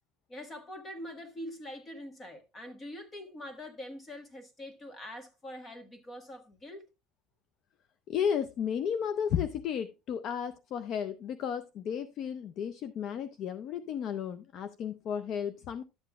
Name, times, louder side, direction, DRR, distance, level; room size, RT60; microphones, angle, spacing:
voice 1, 0.3-6.9, left 1 dB, 20° left, 1.5 m, -44 dB
voice 2, 8.1-15.8, left 8 dB, 45° left, 0.5 m, -33 dB
12.0 x 7.6 x 2.3 m
cardioid pair, 145°, 0 cm